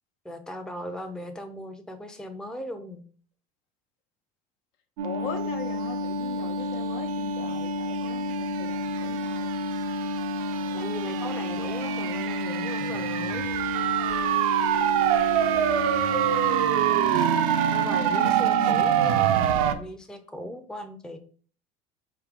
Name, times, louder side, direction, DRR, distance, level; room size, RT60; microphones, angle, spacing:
voice 1, 0.2-3.0 10.7-13.5 17.7-21.2, equal, 5° left, 6 dB, 0.6 m, -38 dB
voice 2, 5.0-9.6 15.3-16.8, left 6 dB, 65° left, 6 dB, 1.0 m, -41 dB
sound 1, 5.0-19.7, right 6 dB, 80° right, 0.6 m, -25 dB
4.2 x 3.4 x 3.7 m, 0.43 s
supercardioid pair, 90°, 18 cm